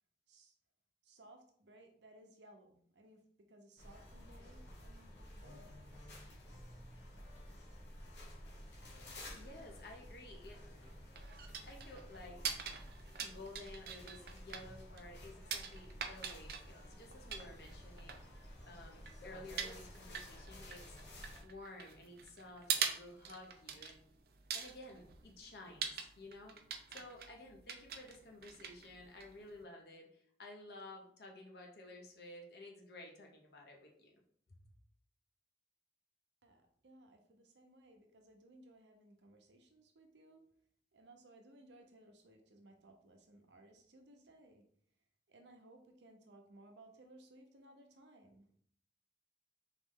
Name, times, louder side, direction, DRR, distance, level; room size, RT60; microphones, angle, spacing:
voice 1, 1.0-5.9 36.4-40.4 40.9-44.6 45.3-48.5, right 1 dB, 85° right, 4 dB, 0.8 m, -61 dB
sound 1, 3.8-21.4, left 1 dB, 80° left, 1.3 m, -53 dB
voice 2, 9.3-10.7 11.6-12.4 13.2-18.2 18.6-21.0 21.4-24.0 24.5-26.6 26.9-34.2, left 2 dB, 65° left, 1 dB, 0.8 m, -53 dB
sound 2, 10.6-29.6, right 7 dB, 55° right, 0.5 m, -44 dB
3.9 x 3.1 x 3.8 m, 0.62 s
head